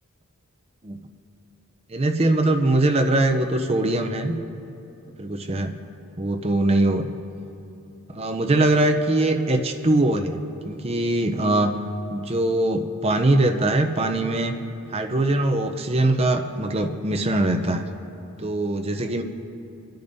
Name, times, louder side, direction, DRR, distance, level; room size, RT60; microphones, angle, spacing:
voice 1, 1.9-4.4 5.2-5.7 6.2-7.1 8.1-10.4 10.6-11.8 12.1-14.5 14.9-17.8 18.4-19.2, right 2 dB, 25° right, 5 dB, 0.6 m, -22 dB
24.0 x 10.5 x 2.7 m, 2.8 s
head